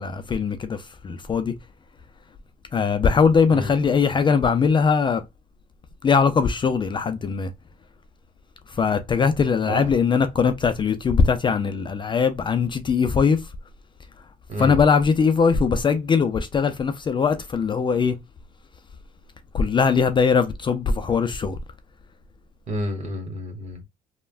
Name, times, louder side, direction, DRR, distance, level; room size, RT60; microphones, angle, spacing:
voice 1, 0.0-1.5 2.7-5.2 6.0-7.5 8.7-13.4 14.6-18.2 19.5-21.6, left 5 dB, 30° left, 0.4 m, -21 dB
voice 2, 14.5-14.8 22.7-23.8, equal, 45° right, 1.2 m, -30 dB
3.2 x 2.1 x 2.3 m
cardioid pair, 110°, 17 cm